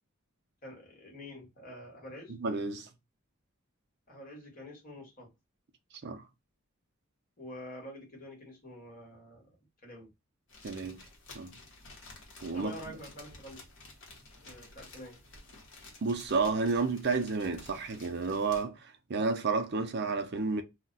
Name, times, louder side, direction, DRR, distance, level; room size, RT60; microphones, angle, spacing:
voice 1, 0.6-2.4 4.1-5.3 7.4-9.5 9.8-10.1 12.5-13.6 14.4-15.2, left 1 dB, 40° left, 1.3 m, -47 dB
voice 2, 2.4-2.9 6.0-6.2 10.6-11.0 11.3-11.5 12.4-12.8 16.0-20.6, right 4 dB, 50° right, 0.5 m, -31 dB
sound 1, 10.5-18.6, left 2 dB, 60° left, 1.0 m, -52 dB
2.3 x 2.1 x 3.8 m
head